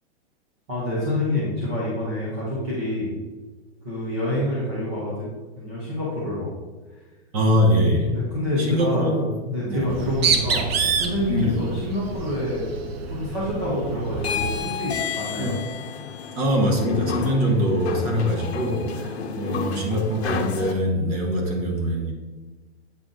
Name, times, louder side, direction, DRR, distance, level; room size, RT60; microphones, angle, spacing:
voice 1, 0.7-3.2 3.8-6.5 8.1-12.7 13.1-15.5, left 1 dB, 10° right, -7 dB, 0.4 m, -27 dB
voice 2, 7.3-8.1 8.6-9.3 9.6-9.9 11.3-11.6 15.4-15.5 16.3-22.1, equal, 35° right, 1 dB, 1.1 m, -23 dB
Bird, 9.8-14.7, right 5 dB, 60° right, 0.8 m, -27 dB
sound 1, 14.2-20.7, left 6 dB, 65° left, 0.8 m, -31 dB
8.0 x 3.7 x 3.7 m, 1.3 s
supercardioid pair, 175°, 34 cm